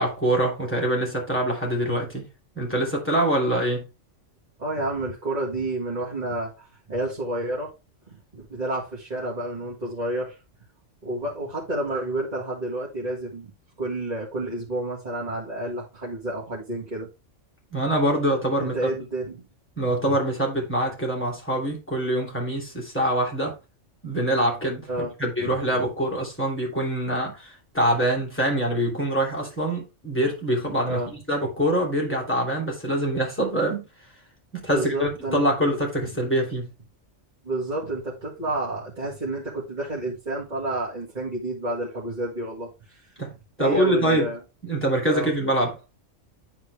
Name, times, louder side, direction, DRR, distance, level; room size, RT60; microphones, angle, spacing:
voice 1, 0.0-2.2 2.5-3.8 17.7-18.9 19.8-23.6 24.0-33.8 34.5-36.7 43.2-43.3 43.6-44.3 44.6-45.7, right 1 dB, 10° left, 3.2 m, -24 dB
voice 2, 4.6-7.7 8.1-10.4 11.0-13.5 13.8-17.1 18.6-19.5 20.1-20.2 24.9-25.1 25.4-25.5 30.8-31.1 34.7-35.5 37.4-43.1 43.6-44.4 45.1-45.3, right 1 dB, 35° right, 2.0 m, -30 dB
10.0 x 4.4 x 3.4 m
omnidirectional pair, 1.3 m